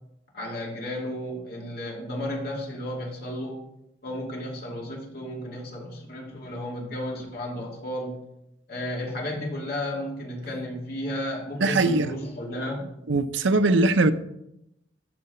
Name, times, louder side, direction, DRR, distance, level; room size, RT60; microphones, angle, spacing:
voice 1, 0.3-3.7 4.0-8.2 8.7-12.9, left 1 dB, 55° left, 2.6 m, -33 dB
voice 2, 11.6-12.1 13.1-14.1, right 2 dB, 90° right, 0.6 m, -21 dB
13.5 x 4.8 x 4.3 m
head